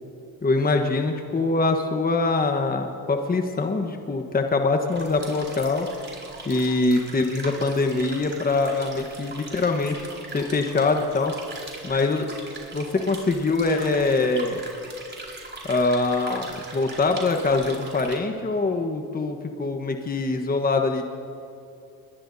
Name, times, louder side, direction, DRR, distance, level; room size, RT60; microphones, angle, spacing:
voice 1, 0.4-5.9 6.5-10.1 10.3-11.3 11.8-12.3 12.7-14.6 15.7-21.0, left 3 dB, 20° left, 5 dB, 1.3 m, -23 dB
sound 1, 4.9-18.1, right 3 dB, 25° right, 4.9 m, -40 dB
24.5 x 21.5 x 2.8 m, 2.6 s
supercardioid pair, 80°, 42 cm